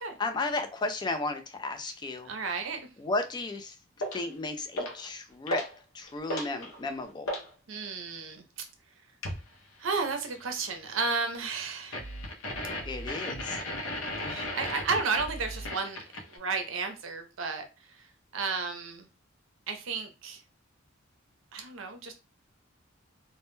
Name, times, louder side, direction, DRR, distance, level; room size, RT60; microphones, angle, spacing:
voice 1, 0.2-2.3 3.0-3.7 4.1-5.6 5.9-7.3 12.8-13.6, left 2 dB, 20° left, 7 dB, 0.3 m, -33 dB
voice 2, 2.2-2.9 7.7-8.4 9.8-12.0 14.2-16.0 16.3-17.6 18.3-19.1 19.7-20.4 21.5-22.1, right 4 dB, 65° right, 6 dB, 0.5 m, -32 dB
sound 1, 4.0-4.3 4.7-5.1 5.5-5.8 6.1-7.5 9.2-9.5 11.9-16.4, left 1 dB, 80° left, 0.6 m, -35 dB
2.1 x 2.1 x 3.0 m, 0.29 s
head